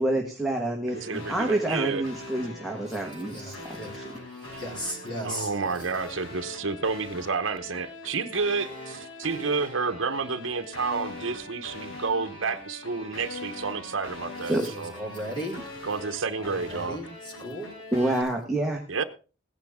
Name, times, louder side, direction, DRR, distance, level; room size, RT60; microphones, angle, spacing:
voice 1, 0.0-3.6 3.9-4.0 14.5-14.6 17.9-18.8, right 1 dB, ahead, 0 dB, 1.5 m, -27 dB
sound 1, 0.9-18.2, left 2 dB, 75° left, 7.2 m, -42 dB
voice 2, 0.9-2.0 4.5-4.6 5.2-14.9 15.9-17.0 18.9-19.0, right 4 dB, 70° right, 7 dB, 0.9 m, -30 dB
voice 3, 2.8-5.9 14.3-15.9 16.4-17.9, equal, 25° left, -2 dB, 3.7 m, -38 dB
17.0 x 10.5 x 3.6 m, 0.33 s
head